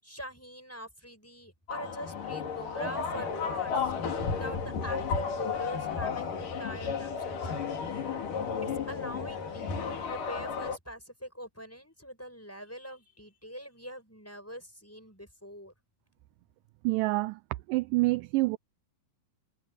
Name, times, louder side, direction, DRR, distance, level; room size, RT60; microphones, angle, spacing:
voice 1, 0.0-3.9 4.3-7.7 8.6-15.7, equal, 5° left, 6.5 m, -43 dB
sound 1, 1.7-10.8, left 6 dB, 60° left, 4.4 m, -33 dB
voice 2, 16.8-17.4 17.7-18.6, right 22 dB, 80° right, 2.0 m, -27 dB
omnidirectional pair, 4.3 m